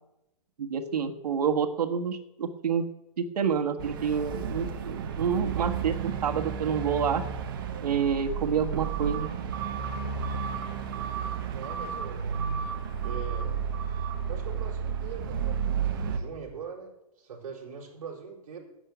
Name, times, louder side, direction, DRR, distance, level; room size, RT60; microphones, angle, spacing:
voice 1, 0.6-2.9 3.2-7.2 7.8-9.3, right 7 dB, 90° right, 6 dB, 1.4 m, -28 dB
sound 1, 3.8-16.2, right 7 dB, 35° right, 1.2 m, -32 dB
voice 2, 11.4-12.4 13.0-13.6 14.3-18.6, right 6 dB, 60° right, -4 dB, 4.6 m, -42 dB
11.0 x 7.4 x 8.0 m, 0.91 s
hypercardioid pair, 180°, 20 cm